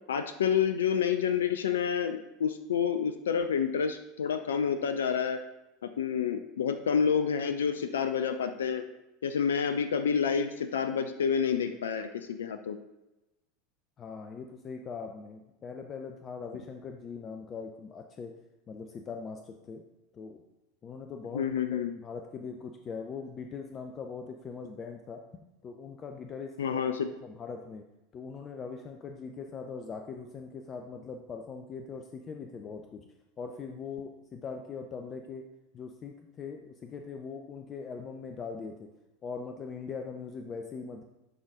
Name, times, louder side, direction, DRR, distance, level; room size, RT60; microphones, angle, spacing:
voice 1, 0.1-5.4 5.8-8.8 9.2-12.8 21.3-21.9 26.6-27.1, left 7 dB, 75° left, 9 dB, 0.4 m, -29 dB
voice 2, 14.0-18.3 18.7-19.8 20.1-20.4 20.8-26.9 27.2-27.8 28.1-33.0 33.4-35.4 35.7-38.9 39.2-41.0, left 5 dB, 35° left, 4 dB, 0.6 m, -41 dB
11.0 x 4.0 x 3.7 m, 0.98 s
hypercardioid pair, 80°, 0 cm